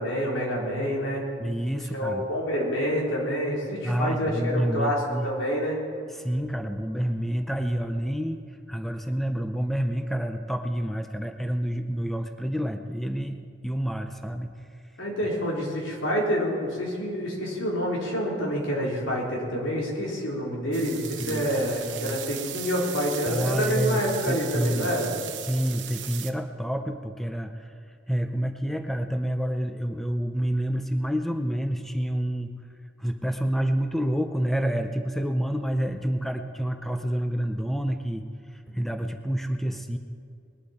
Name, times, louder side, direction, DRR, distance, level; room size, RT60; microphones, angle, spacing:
voice 1, 0.0-1.2 1.9-5.8 15.0-25.2, equal, 80° left, -3 dB, 3.7 m, -27 dB
voice 2, 1.4-2.2 3.8-5.3 6.1-8.4 8.7-14.5 21.2-22.2 23.3-24.0 24.3-24.9 25.5-27.7 28.1-32.5 33.0-40.0, equal, ahead, 6 dB, 0.5 m, -28 dB
sound 1, 20.7-26.3, right 11 dB, 65° right, 1.0 m, -37 dB
20.5 x 11.5 x 4.3 m, 2.5 s
head